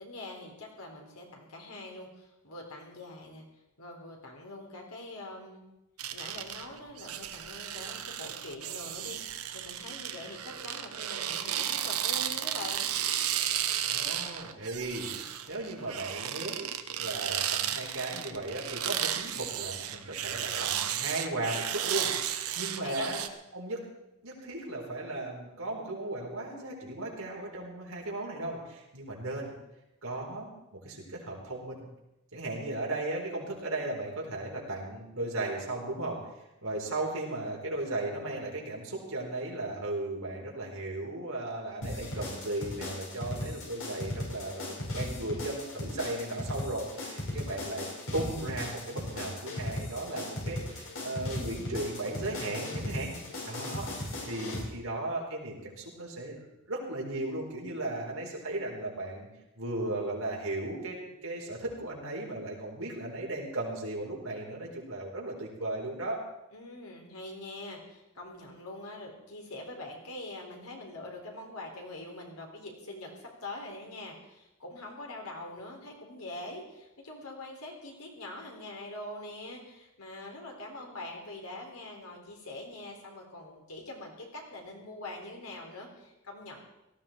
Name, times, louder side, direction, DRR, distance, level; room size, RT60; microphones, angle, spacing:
voice 1, 0.0-3.4 3.8-5.6 6.1-12.9 22.7-23.1 54.2-54.5 66.5-86.6, left 2 dB, 80° left, 1 dB, 3.9 m, -44 dB
sound 1, 6.0-23.3, right 10 dB, 85° right, 1.0 m, -34 dB
voice 2, 13.9-23.2 23.5-23.8 24.2-29.5 30.0-31.8 32.3-36.2 36.6-47.9 48.1-56.4 56.7-59.3 59.6-66.2, right 2 dB, 70° right, -1 dB, 4.3 m, -36 dB
sound 2, 41.8-54.6, left 1 dB, 65° left, 5.3 m, -37 dB
18.0 x 14.5 x 4.5 m, 0.92 s
head